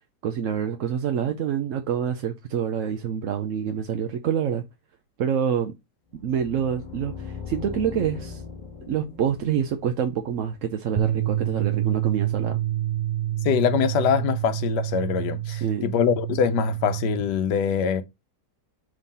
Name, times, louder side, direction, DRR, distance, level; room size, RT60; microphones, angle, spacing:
voice 1, 0.2-4.6 5.2-5.7 6.1-8.4 8.9-12.6 15.5-15.9, right 8 dB, 65° right, 0.9 m, -27 dB
sound 1, 6.1-11.1, left 6 dB, 30° left, 1.2 m, -39 dB
sound 2, 11.0-17.2, right 13 dB, 80° right, 0.4 m, -27 dB
voice 2, 13.4-18.0, left 8 dB, 85° left, 1.3 m, -23 dB
6.2 x 3.8 x 4.0 m
omnidirectional pair, 1.8 m